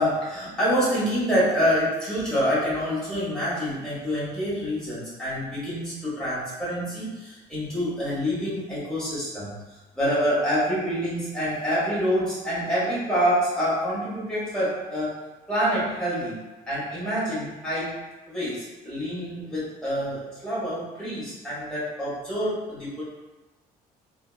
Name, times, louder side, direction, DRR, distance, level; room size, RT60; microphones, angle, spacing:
voice 1, 0.0-15.2 15.5-16.4 16.7-18.0 18.3-23.0, equal, 5° left, -10 dB, 1.4 m, -27 dB
2.8 x 2.2 x 2.2 m, 1.1 s
cardioid pair, 110°, 17 cm